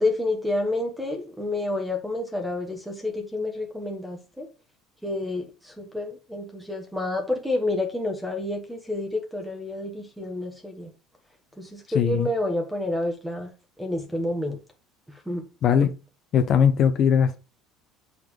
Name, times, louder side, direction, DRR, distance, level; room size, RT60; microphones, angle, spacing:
voice 1, 0.0-4.5 5.0-10.9 11.6-13.5 13.8-14.6 15.3-15.4, left 2 dB, ahead, 1.4 m, -29 dB
voice 2, 11.9-12.3 15.6-15.9 16.3-17.4, left 8 dB, 45° left, 0.8 m, -19 dB
6.9 x 4.0 x 5.0 m
cardioid pair, 140°, 0 cm